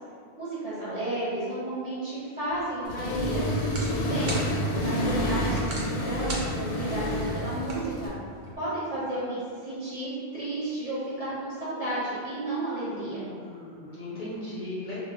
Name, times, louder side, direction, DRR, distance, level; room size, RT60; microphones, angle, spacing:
voice 1, 0.4-4.4 4.8-8.1 8.6-13.2, right 1 dB, 40° right, -11 dB, 0.8 m, -32 dB
sound 1, 2.5-8.6, right 1 dB, 90° right, 0.9 m, -42 dB
Accelerating revving vroom, 2.9-8.1, equal, 85° left, 0.9 m, -29 dB
voice 2, 4.7-5.1 12.8-15.0, left 1 dB, 55° left, -8 dB, 0.6 m, -38 dB
2.1 x 2.0 x 3.5 m, 2.2 s
omnidirectional pair, 1.1 m